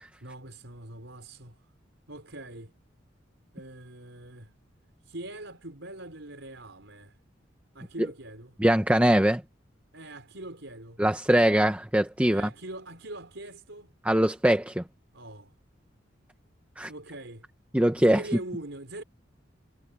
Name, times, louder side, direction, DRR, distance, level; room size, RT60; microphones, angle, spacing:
voice 1, 0.2-1.6 2.1-2.7 3.5-4.5 5.0-7.2 7.7-8.5 9.9-11.0 12.3-13.9 15.1-15.5 16.9-17.5 18.0-19.0, right 1 dB, 75° right, 5.2 m, -42 dB
voice 2, 8.6-9.4 11.0-12.5 14.0-14.8 16.8-16.9 17.7-18.2, right 1 dB, 10° right, 1.0 m, -22 dB
head